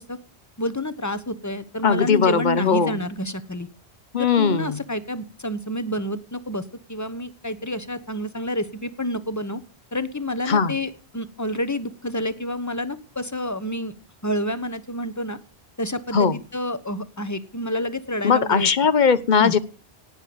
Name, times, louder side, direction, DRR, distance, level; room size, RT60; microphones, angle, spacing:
voice 1, 0.6-3.7 4.2-9.6 9.9-13.9 14.2-15.4 15.8-18.7 19.4-19.5, left 1 dB, 15° left, 13 dB, 1.1 m, -29 dB
voice 2, 1.8-3.0 4.1-4.8 10.5-10.7 16.1-16.4 18.2-19.6, left 5 dB, 45° left, 16 dB, 1.0 m, -19 dB
18.0 x 6.8 x 7.9 m, 0.38 s
omnidirectional pair, 1.1 m